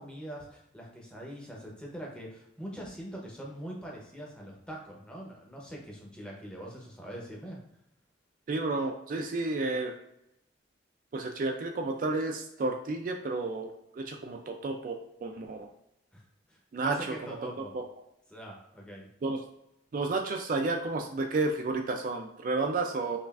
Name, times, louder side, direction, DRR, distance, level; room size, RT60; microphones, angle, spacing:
voice 1, 0.0-7.6 16.1-16.2 16.5-17.7 18.3-19.1, equal, 5° left, -3 dB, 0.7 m, -43 dB
voice 2, 8.5-9.9 11.1-13.7 14.0-15.7 16.7-17.5 17.7-17.8 19.2-19.4 19.9-23.2, right 3 dB, 45° right, 3 dB, 0.3 m, -31 dB
5.4 x 2.4 x 2.3 m, 0.79 s
head